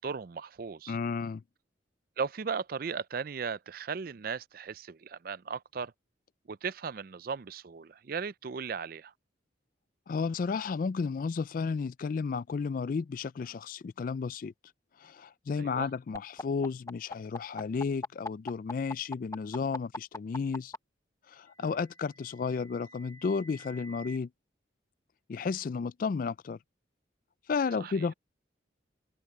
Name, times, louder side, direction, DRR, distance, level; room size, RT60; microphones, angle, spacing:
voice 1, 0.0-1.0 2.2-5.9 6.5-9.1 15.6-15.9 21.6-21.7 27.8-28.1, right 5 dB, 50° right, 0.4 m, -37 dB
voice 2, 0.9-1.4 10.1-14.5 15.0-20.7 21.3-24.3 25.3-26.6 27.5-28.1, left 5 dB, 45° left, 0.3 m, -33 dB
sound 1, 16.1-20.8 21.9-24.2, left 2 dB, 15° left, 0.7 m, -41 dB
head